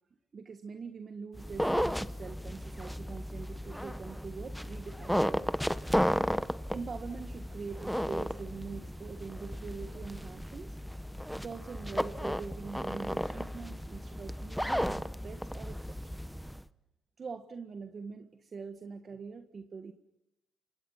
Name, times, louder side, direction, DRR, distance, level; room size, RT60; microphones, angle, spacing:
voice 1, 0.3-5.6 6.7-10.8 11.3-16.2 17.2-19.9, right 5 dB, 40° right, 6 dB, 1.6 m, -44 dB
sound 1, 1.3-16.6, equal, ahead, 0.9 m, -34 dB
27.5 x 25.0 x 5.8 m, 0.89 s
cardioid pair, 90°, 0 cm